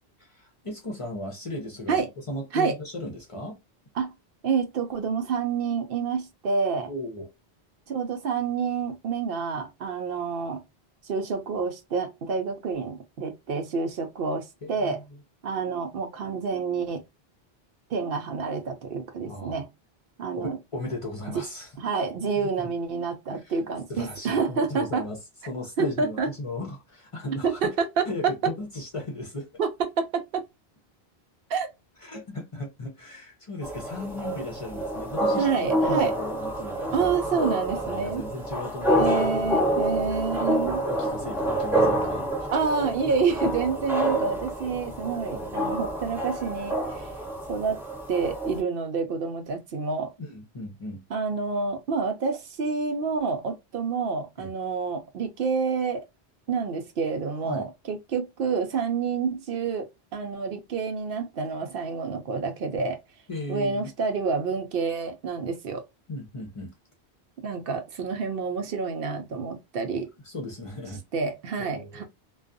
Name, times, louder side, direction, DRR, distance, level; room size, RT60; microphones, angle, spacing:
voice 1, 0.2-3.6 6.8-7.3 14.6-15.0 19.2-19.6 20.3-21.7 22.2-22.3 22.6-22.7 23.3-23.6 23.9-25.2 25.5-27.7 28.1-29.5 32.0-39.6 40.6-42.5 45.3-45.6 50.2-51.0 54.4-54.5 57.4-57.7 63.3-63.9 66.1-66.7 70.0-71.0 71.6-72.0, left 2 dB, 35° left, 0.6 m, -36 dB
voice 2, 4.4-6.9 7.9-10.6 11.0-15.0 15.4-17.0 17.9-19.7 20.2-20.6 21.8-25.1 25.8-26.3 27.4-27.7 28.0-28.3 29.6-30.4 31.5-31.7 35.4-36.1 36.9-38.2 38.9-40.8 42.5-47.1 47.5-47.8 48.1-50.1 51.1-56.0 56.5-63.0 63.5-65.8 67.4-70.1 71.1-72.0, right 5 dB, 65° right, 0.7 m, -28 dB
sound 1, 33.6-48.6, right 1 dB, ahead, 0.6 m, -28 dB
2.4 x 2.3 x 2.5 m
omnidirectional pair, 1.1 m